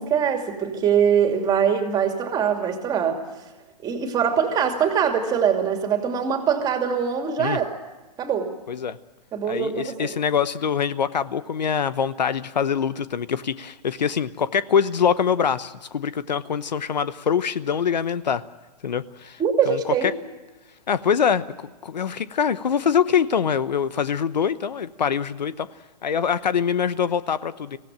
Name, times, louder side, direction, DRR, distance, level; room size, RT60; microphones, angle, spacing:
voice 1, 0.0-3.2 3.8-7.7 8.2-8.5 9.3-10.1 19.4-20.1, right 7 dB, 20° right, 4 dB, 2.7 m, -22 dB
voice 2, 9.5-18.4 18.8-20.1 20.9-25.7 26.0-27.8, left 7 dB, 90° left, 15 dB, 1.0 m, -24 dB
23.0 x 16.5 x 9.1 m, 1.1 s
hypercardioid pair, 140°, 21 cm